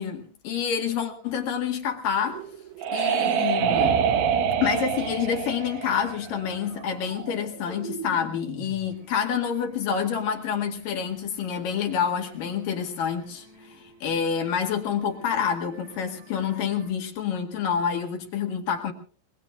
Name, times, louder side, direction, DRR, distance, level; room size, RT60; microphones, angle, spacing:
voice 1, 0.0-2.4 2.9-4.0 4.6-18.9, left 7 dB, 55° left, 3 dB, 2.7 m, -28 dB
sound 1, 2.3-6.8, right 7 dB, 75° right, 3.1 m, -25 dB
sound 2, 5.0-16.9, right 4 dB, 30° right, 3.1 m, -46 dB
26.5 x 21.0 x 2.4 m, 0.42 s
omnidirectional pair, 5.9 m